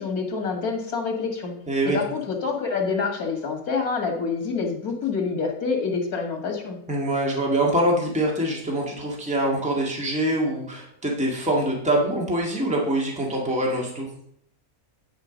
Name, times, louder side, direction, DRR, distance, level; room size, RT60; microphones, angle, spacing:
voice 1, 0.0-1.5 1.8-6.8, left 5 dB, 85° left, 3 dB, 2.4 m, -27 dB
voice 2, 1.7-2.0 6.9-14.1, right 1 dB, 5° right, -2 dB, 2.0 m, -24 dB
10.5 x 5.1 x 5.1 m, 0.71 s
omnidirectional pair, 1.5 m